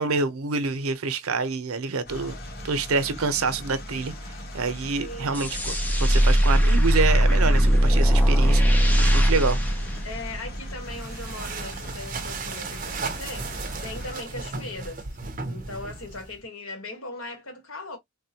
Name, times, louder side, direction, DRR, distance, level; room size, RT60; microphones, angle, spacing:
voice 1, 0.0-2.4 2.6-4.1 4.5-5.7 6.0-9.6, right 4 dB, 85° right, 0.6 m, -27 dB
sound 1, 2.0-14.1, equal, 45° left, 0.9 m, -39 dB
voice 2, 5.0-5.4 10.0-15.0 15.5-18.0, left 2 dB, 75° left, 1.2 m, -39 dB
sound 2, 5.3-10.7, equal, 10° left, 0.4 m, -20 dB
sound 3, 10.8-16.4, right 4 dB, 40° right, 0.6 m, -35 dB
3.7 x 2.2 x 2.7 m
head